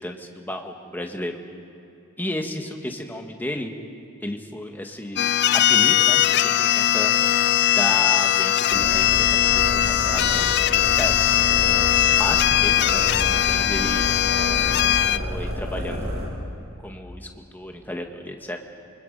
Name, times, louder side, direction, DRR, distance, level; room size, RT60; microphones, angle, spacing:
voice 1, 0.0-1.4 2.2-3.7 4.2-6.2 6.6-7.1 7.7-11.5 12.2-14.1 14.8-16.1 16.8-18.6, left 1 dB, 10° left, 3 dB, 1.5 m, -33 dB
sound 1, 5.2-15.2, left 12 dB, 50° left, 0.4 m, -20 dB
sound 2, 8.7-16.3, equal, 75° right, 6.5 m, -30 dB
28.5 x 25.0 x 5.3 m, 2.8 s
head